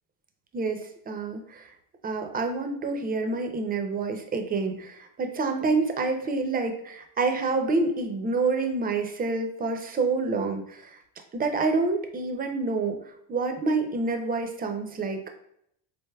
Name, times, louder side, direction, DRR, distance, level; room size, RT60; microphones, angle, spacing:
voice 1, 0.5-1.7 2.0-11.0 11.3-13.0 13.3-15.2, right 3 dB, 20° right, 4 dB, 0.4 m, -27 dB
4.0 x 3.3 x 2.2 m, 0.72 s
cardioid pair, 105°, 49 cm